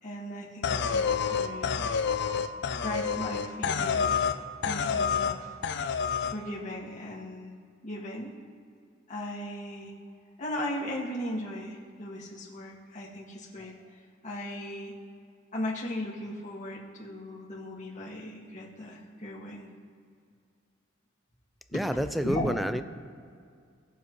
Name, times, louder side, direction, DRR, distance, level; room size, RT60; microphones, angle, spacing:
voice 1, 0.0-1.9 2.8-4.3 4.6-5.5 6.2-7.5 7.8-8.3 9.1-9.9 10.4-14.9 15.5-19.7 21.7-21.8 22.2-22.6, left 1 dB, 40° left, -5 dB, 1.9 m, -37 dB
sound 1, 0.6-4.4 4.6-5.4 5.6-6.4, left 6 dB, 60° left, 0.5 m, -28 dB
voice 2, 21.7-22.8, equal, ahead, 10 dB, 0.3 m, -28 dB
17.5 x 7.0 x 3.1 m, 2.2 s
head